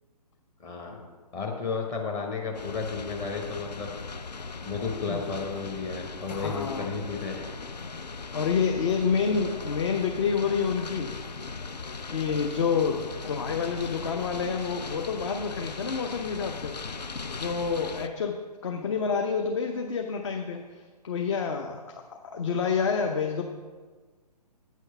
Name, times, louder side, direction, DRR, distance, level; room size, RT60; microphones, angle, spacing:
voice 1, 0.6-1.1 1.3-3.9 4.6-7.4, left 4 dB, 20° left, 2 dB, 0.9 m, -33 dB
sound 1, 2.5-18.1, left 4 dB, 80° left, 0.6 m, -39 dB
voice 2, 6.3-6.9 8.3-11.2 12.1-18.4 18.6-20.6 21.0-22.0 22.3-23.4, left 6 dB, 45° left, 3 dB, 0.7 m, -28 dB
8.2 x 6.4 x 5.6 m, 1.4 s
figure-of-eight pair, 130°, 21 cm